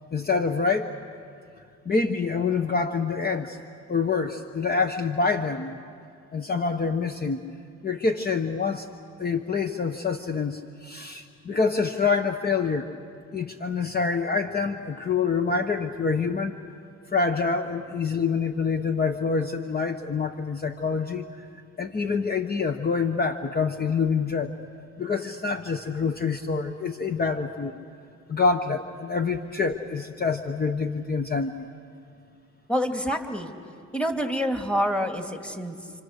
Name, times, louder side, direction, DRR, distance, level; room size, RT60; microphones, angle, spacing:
voice 1, 0.1-0.9 1.8-3.6 3.9-5.8 6.3-7.4 7.8-8.9 9.2-12.9 13.3-16.6 17.1-21.5 21.8-24.5 25.0-27.8 28.3-31.7, left 4 dB, 30° left, 6 dB, 1.1 m, -26 dB
voice 2, 32.7-33.5 33.9-35.9, equal, 5° left, 4 dB, 2.2 m, -27 dB
28.5 x 26.5 x 6.5 m, 2.3 s
cardioid pair, 90°, 30 cm